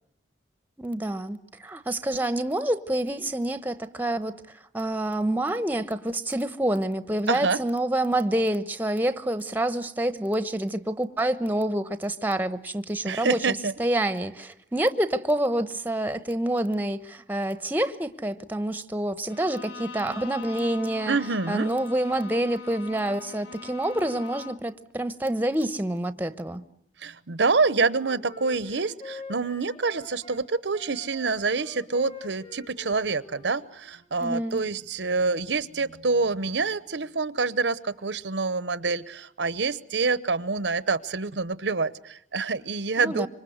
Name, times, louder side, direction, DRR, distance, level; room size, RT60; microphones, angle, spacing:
voice 1, 0.8-4.3 4.7-21.2 21.5-26.6 34.2-34.6 43.0-43.3, right 1 dB, 10° right, 1.0 m, -27 dB
voice 2, 7.3-7.6 13.1-13.7 21.1-21.7 27.0-43.3, right 4 dB, 75° right, 0.9 m, -27 dB
Bowed string instrument, 19.3-24.7, left 3 dB, 65° left, 1.8 m, -42 dB
Wind instrument woodwind instrument, 27.5-30.4 30.7-34.1, left 4 dB, 30° left, 2.2 m, -45 dB
26.0 x 24.5 x 8.0 m
head